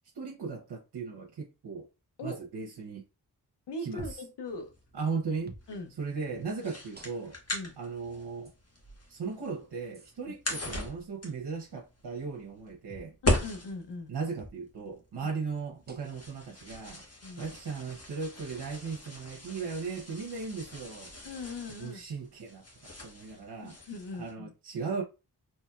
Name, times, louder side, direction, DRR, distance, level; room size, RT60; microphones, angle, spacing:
voice 1, 0.1-1.9 2.2-3.0 3.8-4.2 4.9-5.5 6.0-7.4 7.8-8.5 9.1-13.1 14.1-17.0 17.4-21.1 21.7-23.7 24.2-25.0, right 5 dB, 70° right, 0.9 m, -37 dB
voice 2, 3.7-4.7 5.7-5.9 7.5-7.8 13.2-14.1 17.2-17.5 21.2-22.0 23.6-24.5, left 2 dB, 85° left, 0.7 m, -40 dB
sound 1, 4.0-4.4 5.5-5.7 7.0-7.5 8.5-8.6 9.9-10.1 12.9-13.2 14.4-14.6 15.9-16.3 17.4-17.5 18.9-19.1, right 2 dB, 25° right, 0.7 m, -48 dB
sound 2, 4.5-24.3, left 1 dB, 35° left, 1.4 m, -39 dB
4.3 x 3.0 x 2.3 m
cardioid pair, 45°, 40 cm